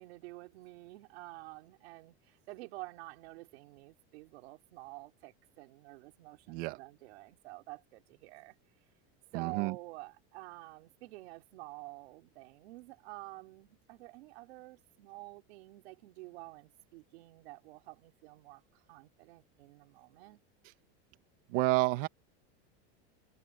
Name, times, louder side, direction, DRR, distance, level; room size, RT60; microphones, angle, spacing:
voice 1, 0.0-8.6 9.3-20.4, right 21 dB, 80° right, 3.7 m, -49 dB
voice 2, 9.3-9.7 21.5-22.1, right 23 dB, 55° right, 2.0 m, -29 dB
supercardioid pair, 165°, 32 cm